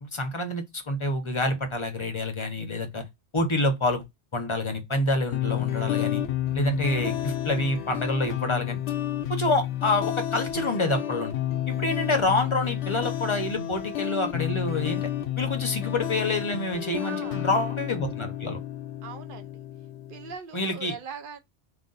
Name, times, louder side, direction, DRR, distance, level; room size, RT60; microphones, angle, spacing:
voice 1, 0.0-3.0 3.3-4.0 4.3-6.2 6.5-8.8 9.3-11.3 11.7-15.1 15.4-18.6 20.5-20.9, left 2 dB, 35° left, 0.6 m, -27 dB
sound 1, 5.3-20.3, left 12 dB, 85° left, 0.9 m, -31 dB
voice 2, 17.0-17.5 19.0-19.6 20.1-21.4, right 6 dB, 60° right, 0.7 m, -40 dB
3.7 x 2.4 x 3.8 m
omnidirectional pair, 1.1 m